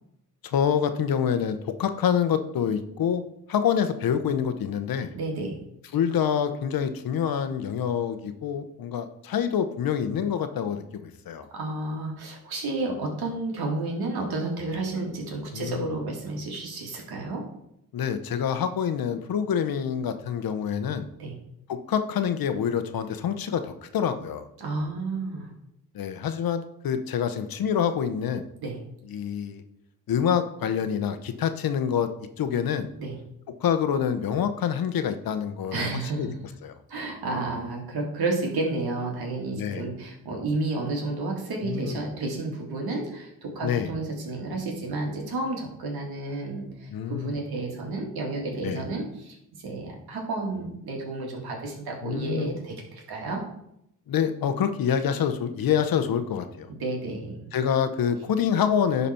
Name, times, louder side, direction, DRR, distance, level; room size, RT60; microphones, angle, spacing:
voice 1, 0.4-3.2 3.5-5.1 5.9-11.5 15.5-15.9 17.9-21.0 21.7-24.5 25.9-28.4 29.1-29.6 30.1-32.1 32.4-32.9 33.6-35.9 36.2-36.3 36.6-36.7 39.5-39.9 41.6-42.0 43.6-43.9 46.9-47.3 48.6-48.8 52.0-52.5 54.1-56.7 57.5-59.1, left 8 dB, 70° left, 10 dB, 0.9 m, -26 dB
voice 2, 5.1-5.6 11.5-17.4 21.2-21.3 24.6-25.5 28.6-28.8 32.9-33.2 35.7-36.3 36.9-49.4 49.6-53.4 56.7-57.5, right 2 dB, 80° right, 0 dB, 2.3 m, -31 dB
11.0 x 4.1 x 4.3 m, 0.78 s
supercardioid pair, 55°, 37 cm